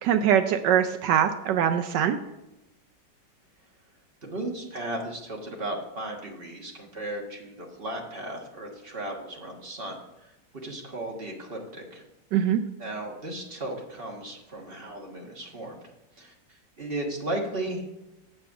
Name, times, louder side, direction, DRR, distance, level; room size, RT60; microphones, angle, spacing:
voice 1, 0.0-2.2 12.3-12.6, right 9 dB, 75° right, 8 dB, 1.1 m, -23 dB
voice 2, 4.2-10.3 10.6-12.0 12.8-15.8 16.2-18.0, right 1 dB, 35° right, 0 dB, 1.5 m, -35 dB
7.7 x 7.6 x 4.7 m, 0.96 s
omnidirectional pair, 2.0 m